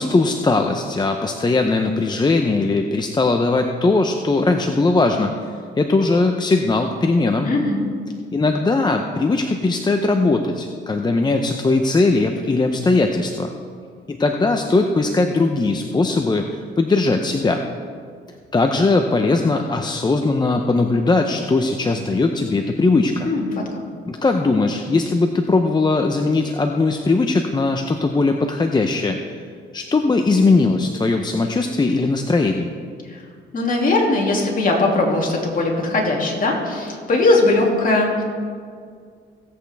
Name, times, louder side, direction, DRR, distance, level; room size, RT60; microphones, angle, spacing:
voice 1, 0.0-5.3 5.8-7.5 8.3-13.5 14.1-17.6 18.5-23.3 24.1-29.2 29.7-32.7, left 3 dB, 20° left, 4 dB, 0.7 m, -19 dB
voice 2, 7.4-7.8 23.2-23.8 33.1-33.2 33.5-38.2, left 2 dB, 45° left, -1 dB, 2.6 m, -19 dB
17.0 x 8.2 x 3.5 m, 2.1 s
cardioid pair, 90°, 20 cm